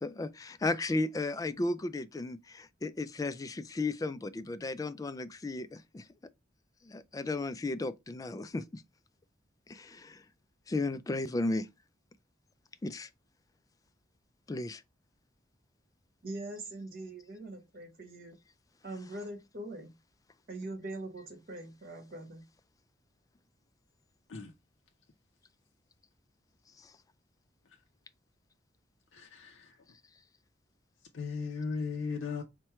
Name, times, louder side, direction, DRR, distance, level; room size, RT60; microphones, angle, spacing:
voice 1, 0.0-6.1 6.8-8.8 9.7-10.2 10.7-11.7 12.8-13.1 14.5-14.8 26.8-26.9, left 2 dB, 20° left, 0.3 m, -34 dB
voice 2, 16.2-18.4 18.8-19.9 20.5-22.4, right 2 dB, 55° right, 1.4 m, -42 dB
voice 3, 29.1-29.7 31.1-32.4, left 5 dB, 90° left, 0.6 m, -36 dB
4.4 x 2.2 x 4.4 m
head